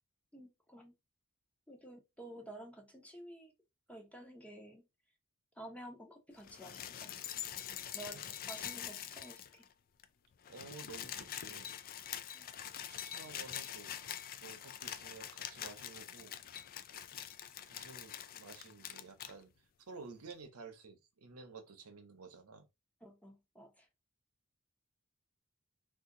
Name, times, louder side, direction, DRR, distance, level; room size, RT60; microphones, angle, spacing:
voice 1, 0.3-0.9 1.7-3.5 3.9-4.8 5.6-7.1 7.9-9.6 12.3-12.5 23.0-23.9, right 1 dB, 5° left, 0.7 m, -51 dB
Cereal Pour, 6.4-9.7 10.0-10.1 10.3-19.3 20.3-20.4, left 10 dB, 40° left, 0.3 m, -45 dB
voice 2, 8.6-8.9 10.5-11.7 12.7-14.0 14.4-16.3 17.6-22.6, right 4 dB, 75° right, 0.8 m, -53 dB
2.7 x 2.5 x 3.7 m
head